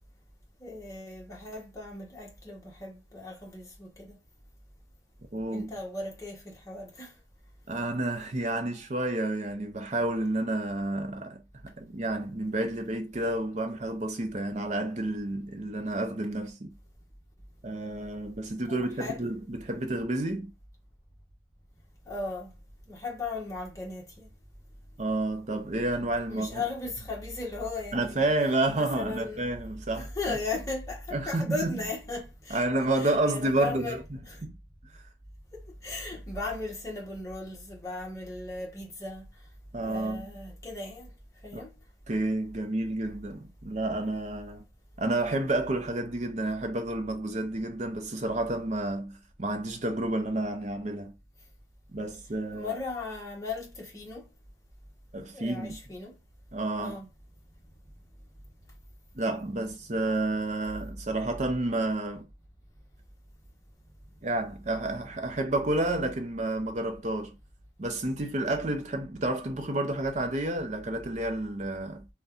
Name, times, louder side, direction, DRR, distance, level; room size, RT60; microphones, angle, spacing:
voice 1, 0.6-4.2 5.5-7.1 18.7-19.3 22.1-22.5 22.9-24.3 26.3-28.3 28.7-29.4 29.9-32.6 32.9-34.0 34.3-34.4 35.5-39.3 39.8-41.1 41.4-41.7 52.5-54.3 55.3-56.2 56.8-57.1, left 3 dB, 15° left, 1.0 m, -37 dB
voice 2, 5.3-5.7 7.7-16.8 17.6-20.5 25.0-26.6 27.9-30.4 31.1-31.7 32.5-34.0 34.4-34.6 34.8-34.9 39.7-40.3 41.5-41.6 42.1-44.6 45.0-51.1 51.9-52.8 55.1-55.8 56.5-57.0 59.1-62.3 64.2-67.4 67.8-72.1, right 2 dB, 35° right, 0.6 m, -30 dB
2.6 x 2.2 x 3.5 m
head